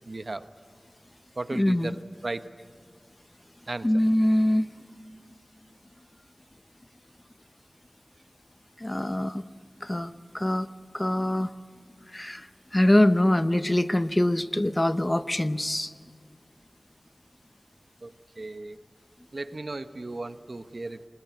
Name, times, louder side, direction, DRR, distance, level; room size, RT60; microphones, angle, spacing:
voice 1, 0.1-0.4 1.4-1.9 2.2-2.5 3.7-3.8 18.0-18.1 18.4-18.8 19.3-21.0, right 2 dB, 60° right, 11 dB, 0.9 m, -35 dB
voice 2, 1.5-1.9 3.8-4.7 8.8-9.4 9.8-10.7 10.9-11.5 12.1-15.9, left 1 dB, 25° left, 12 dB, 0.8 m, -24 dB
24.5 x 21.0 x 8.2 m, 2.2 s
wide cardioid pair, 55°, 0 cm